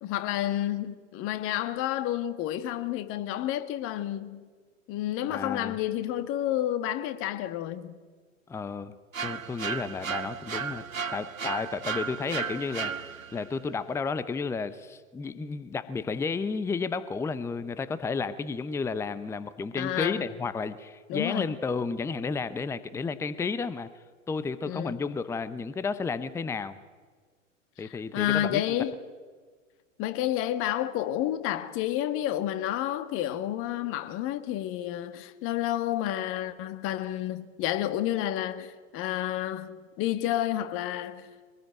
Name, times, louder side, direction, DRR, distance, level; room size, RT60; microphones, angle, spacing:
voice 1, 0.0-4.5 4.9-7.9 19.8-20.2 21.1-21.5 24.7-25.0 27.8-29.0 30.0-41.3, left 12 dB, 35° left, 1.6 m, -30 dB
voice 2, 5.3-5.8 8.5-8.9 9.2-10.8 11.1-23.9 24.3-26.8 27.8-28.8, left 4 dB, 5° left, 0.8 m, -32 dB
sound 1, 9.1-13.5, right 6 dB, 90° right, 0.7 m, -34 dB
24.0 x 19.5 x 9.0 m
figure-of-eight pair, 100°, 39 cm